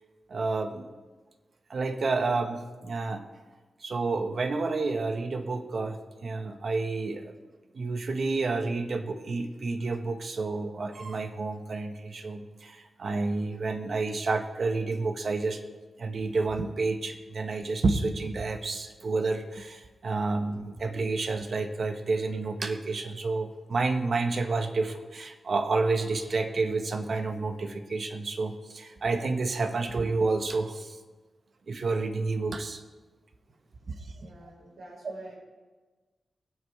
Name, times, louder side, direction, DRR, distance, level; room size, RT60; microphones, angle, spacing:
voice 1, 0.3-0.9 1.7-3.2 3.8-7.3 7.7-15.6 16.0-31.0 31.7-32.8 35.0-35.1, right 3 dB, 60° right, 6 dB, 1.3 m, -30 dB
voice 2, 33.9-35.3, right 1 dB, 90° right, -3 dB, 5.0 m, -49 dB
23.0 x 8.3 x 3.4 m, 1.3 s
cardioid pair, 80°, 0 cm